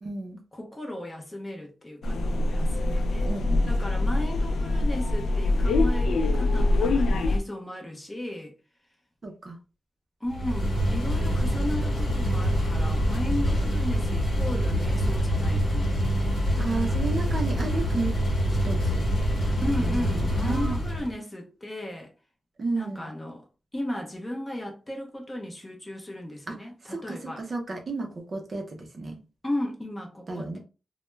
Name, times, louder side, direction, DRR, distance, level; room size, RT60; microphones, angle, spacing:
voice 1, 0.0-0.4 3.2-3.7 9.2-9.6 16.5-18.2 18.5-19.0 19.4-20.8 22.6-23.1 26.5-29.2 30.3-30.6, right 3 dB, 35° right, 0.5 m, -33 dB
voice 2, 0.5-3.3 3.7-8.5 10.2-16.0 16.7-17.0 19.6-22.1 22.7-23.4 23.7-27.4 29.4-30.6, left 1 dB, 15° left, 0.6 m, -35 dB
sound 1, 2.0-7.4, left 2 dB, 90° left, 0.3 m, -24 dB
sound 2, 10.3-21.1, equal, 65° left, 1.0 m, -25 dB
2.2 x 2.1 x 3.1 m
wide cardioid pair, 170°, 0 cm